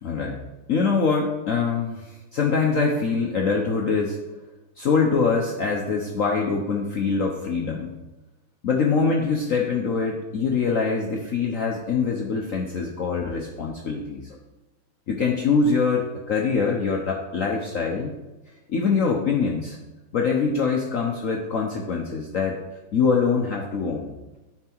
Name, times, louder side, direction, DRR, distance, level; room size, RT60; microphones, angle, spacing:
voice 1, 0.0-0.4 0.7-4.2 4.8-7.9 8.6-14.4 15.1-18.1 18.7-19.8 20.1-22.6 22.9-24.1, left 5 dB, 70° left, 0 dB, 0.7 m, -24 dB
9.7 x 4.5 x 4.4 m, 1.1 s
omnidirectional pair, 2.3 m